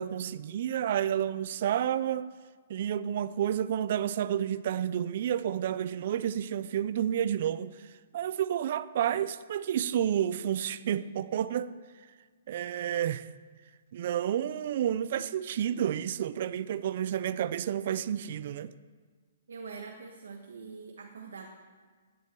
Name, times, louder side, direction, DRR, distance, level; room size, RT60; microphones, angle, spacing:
voice 1, 0.0-2.3 2.7-7.8 8.1-11.7 12.5-13.3 13.9-18.7, right 10 dB, 35° right, 0.4 m, -30 dB
voice 2, 19.5-21.5, right 5 dB, 80° right, 1.5 m, -44 dB
16.5 x 10.5 x 4.6 m
hypercardioid pair, 175°, 0 cm